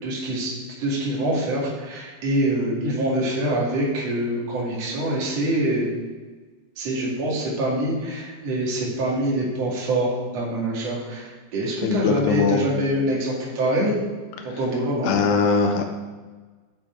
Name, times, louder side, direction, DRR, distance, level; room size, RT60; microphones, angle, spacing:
voice 1, 0.0-0.5 0.8-5.9 6.8-13.9 14.4-15.1, right 1 dB, 45° right, -5 dB, 2.7 m, -25 dB
voice 2, 11.8-12.6 15.0-15.8, left 5 dB, 90° left, 4 dB, 3.3 m, -21 dB
10.0 x 7.0 x 4.6 m, 1.4 s
omnidirectional pair, 5.4 m